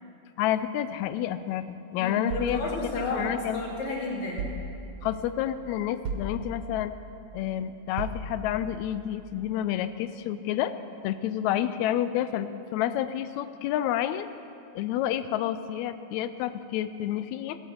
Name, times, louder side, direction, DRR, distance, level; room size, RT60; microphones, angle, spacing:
voice 1, 0.4-1.7 1.9-2.6 3.1-3.6 5.0-6.9 7.3-10.7 11.0-14.3 14.7-17.6, left 11 dB, 80° left, 12 dB, 1.6 m, -29 dB
voice 2, 2.0-4.4, left 2 dB, 65° left, -3 dB, 3.7 m, -31 dB
sound 1, 2.3-3.7 4.4-5.2 6.0-6.9 8.0-8.8, right 2 dB, 70° right, 1.7 m, -37 dB
16.0 x 9.0 x 7.8 m, 2.6 s
omnidirectional pair, 3.6 m